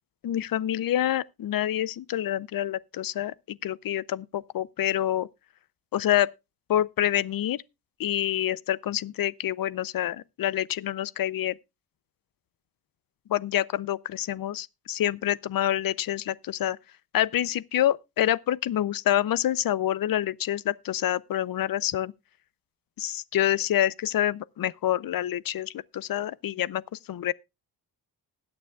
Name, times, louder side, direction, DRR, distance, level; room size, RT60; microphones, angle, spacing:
voice 1, 0.2-5.3 5.9-6.3 6.7-7.6 8.0-11.5 13.3-16.8 17.1-22.1 23.0-26.8 27.1-27.3, left 12 dB, 60° left, 0.5 m, -27 dB
20.0 x 8.9 x 2.3 m
wide cardioid pair, 130°, 39 cm